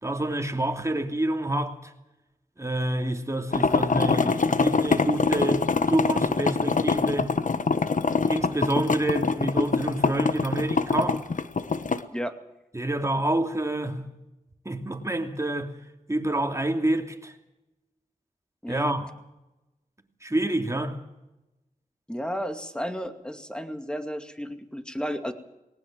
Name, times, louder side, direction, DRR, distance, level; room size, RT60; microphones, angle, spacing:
voice 1, 0.0-1.9 2.6-7.4 8.3-11.3 12.7-14.1 14.6-15.7 16.1-17.4 18.7-19.1 20.2-21.0, right 1 dB, 20° right, 2.9 m, -28 dB
sound 1, 3.5-12.0, left 4 dB, 65° left, 1.2 m, -24 dB
voice 2, 22.1-25.3, equal, 5° left, 2.4 m, -32 dB
19.5 x 19.0 x 7.6 m
cardioid pair, 40°, 14 cm